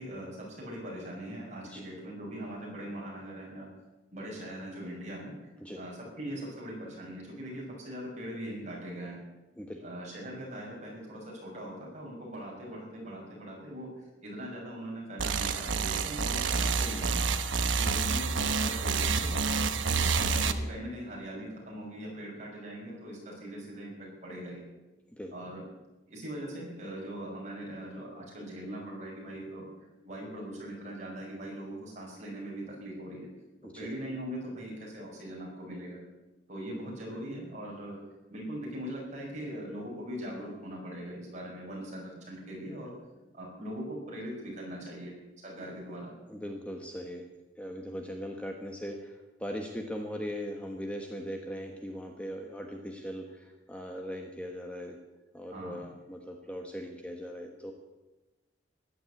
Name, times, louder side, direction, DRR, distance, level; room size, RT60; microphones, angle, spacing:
voice 1, 0.0-3.7 4.1-5.5 5.8-9.2 9.8-17.3 17.7-19.6 20.1-24.6 25.3-25.6 26.1-29.7 30.0-33.3 33.7-36.0 36.5-38.0 38.3-42.9 43.3-45.1 45.4-46.1 55.5-55.8, right 1 dB, 40° right, -3 dB, 6.4 m, -41 dB
sound 1, 15.2-20.5, right 4 dB, 80° right, 1.1 m, -28 dB
voice 2, 37.1-37.5 46.3-47.3 47.6-55.0 55.3-57.7, equal, 5° left, 2 dB, 1.2 m, -39 dB
15.0 x 11.5 x 8.4 m, 1.1 s
head